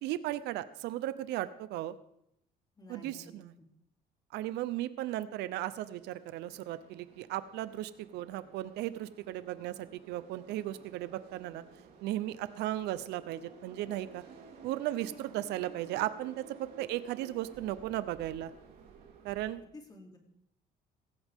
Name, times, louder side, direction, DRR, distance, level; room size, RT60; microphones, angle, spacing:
voice 1, 0.0-1.9 2.9-3.5 4.3-11.6 12.0-14.2 14.6-18.5 19.2-19.6, right 14 dB, 85° right, 14 dB, 0.7 m, -36 dB
voice 2, 2.8-3.4 19.7-20.2, left 2 dB, 25° left, 2 dB, 2.9 m, -51 dB
sound 1, 5.7-19.5, right 5 dB, 65° right, 3.6 m, -54 dB
16.5 x 15.5 x 3.7 m, 0.75 s
cardioid pair, 110°, 17 cm